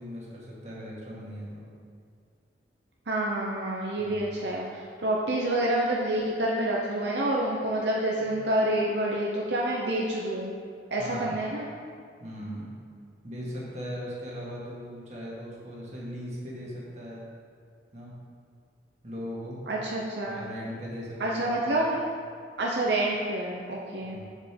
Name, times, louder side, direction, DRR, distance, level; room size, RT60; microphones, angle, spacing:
voice 1, 0.0-1.6 4.0-4.4 8.2-8.4 11.0-11.4 12.2-12.7 13.2-17.2 17.9-18.1 19.0-19.6 20.3-21.9 24.0-24.3, equal, 40° right, -5 dB, 1.9 m, -39 dB
voice 2, 3.1-10.5 10.9-11.6 19.7-20.4 21.2-22.0 22.6-24.2, right 1 dB, 75° right, -3 dB, 0.8 m, -28 dB
7.4 x 5.4 x 5.2 m, 2.3 s
head